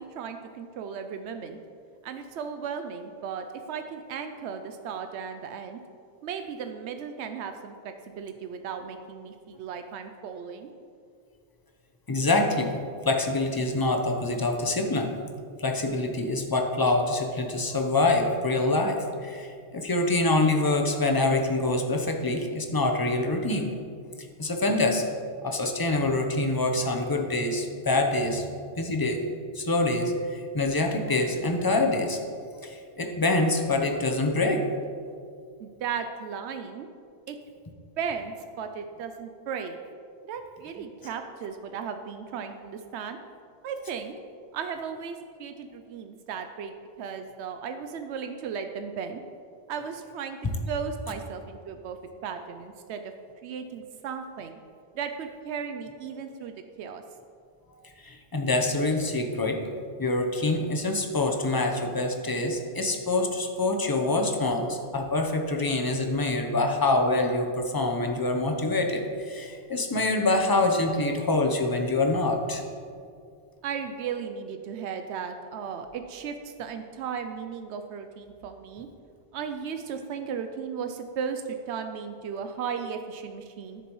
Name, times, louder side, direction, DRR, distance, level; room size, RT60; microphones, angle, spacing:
voice 1, 0.0-1.6 2.0-5.8 6.2-10.7 35.6-36.9 37.3-37.4 38.0-39.8 40.2-43.2 43.6-44.1 44.5-49.2 49.7-50.4 50.7-52.0 52.2-53.1 53.4-54.6 54.9-57.0 73.6-78.9 79.3-83.8, right 6 dB, 90° right, 7 dB, 0.9 m, -36 dB
voice 2, 12.1-12.8 13.0-15.1 15.6-23.7 24.4-25.0 25.4-28.4 28.8-29.2 29.5-32.2 32.6-34.6 58.0-59.7 60.0-72.6, left 2 dB, 25° left, 3 dB, 0.7 m, -25 dB
13.0 x 6.9 x 3.1 m, 2.3 s
omnidirectional pair, 1.1 m